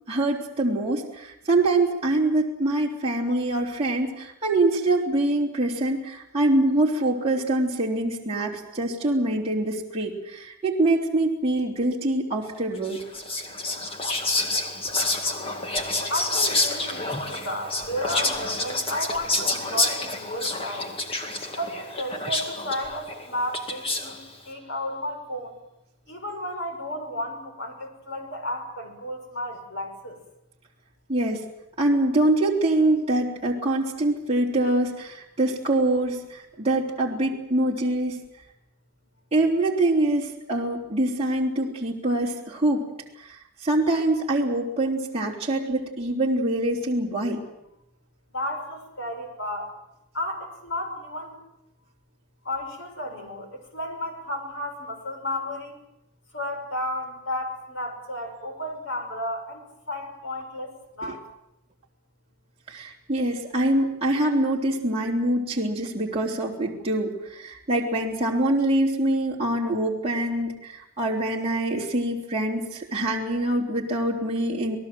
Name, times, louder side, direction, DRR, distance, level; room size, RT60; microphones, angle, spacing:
voice 1, 0.0-13.0 31.1-31.5 31.8-38.2 39.3-42.8 43.1-47.4 61.0-61.1 62.7-74.8, right 1 dB, 25° right, -3 dB, 3.4 m, -24 dB
Whispering, 12.8-24.3, left 2 dB, 25° left, 2.1 m, -28 dB
voice 2, 16.1-20.9 21.6-25.6 26.1-30.2 48.3-49.7 50.1-51.4 52.4-55.8 56.3-61.2, left 1 dB, 55° left, 4 dB, 5.9 m, -33 dB
28.0 x 19.0 x 7.7 m, 0.85 s
head